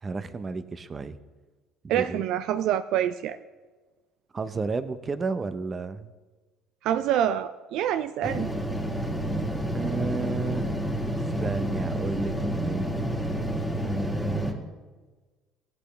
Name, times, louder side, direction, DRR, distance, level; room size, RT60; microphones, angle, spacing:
voice 1, 0.0-1.2 1.9-2.2 4.3-6.1 9.7-10.7 11.4-12.9 13.8-14.6, right 4 dB, 30° right, 12 dB, 0.6 m, -32 dB
voice 2, 1.9-3.4 6.8-8.5, right 10 dB, 70° right, 11 dB, 0.3 m, -26 dB
sound 1, 8.2-14.5, right 1 dB, 5° left, 1.8 m, -29 dB
15.5 x 8.3 x 3.3 m, 1.3 s
supercardioid pair, 75°, 0 cm